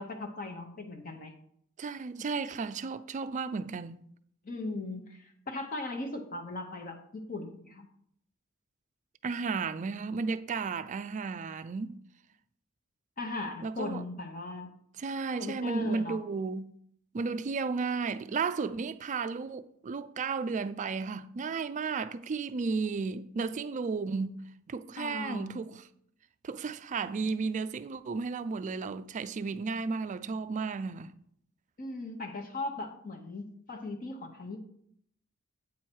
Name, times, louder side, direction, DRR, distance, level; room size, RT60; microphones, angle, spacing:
voice 1, 0.0-1.3 4.4-7.9 13.2-14.7 15.4-16.2 25.0-25.6 31.8-34.6, left 2 dB, 40° left, 0.9 m, -38 dB
voice 2, 1.8-4.1 9.2-12.0 13.6-14.0 15.0-16.7 17.1-24.4 24.7-25.8 26.4-31.1, right 4 dB, 35° right, 0.4 m, -33 dB
8.6 x 4.6 x 4.5 m
head